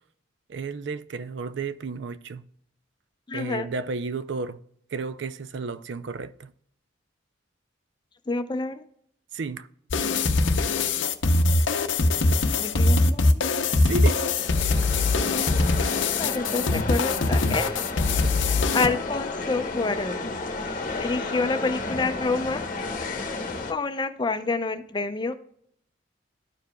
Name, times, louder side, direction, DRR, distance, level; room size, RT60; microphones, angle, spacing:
voice 1, 0.5-2.4 3.3-4.6 4.9-6.5 9.3-9.7 13.8-14.3, right 4 dB, 65° right, 0.4 m, -32 dB
voice 2, 3.3-3.7 8.3-8.8 12.6-13.4 16.2-17.8 18.2-20.3 20.6-22.6 23.7-25.3, left 3 dB, 25° left, 0.5 m, -28 dB
sound 1, 9.9-18.9, left 3 dB, 80° left, 0.6 m, -22 dB
sound 2, 14.4-23.7, left 3 dB, 45° left, 0.9 m, -32 dB
12.5 x 4.8 x 2.2 m
head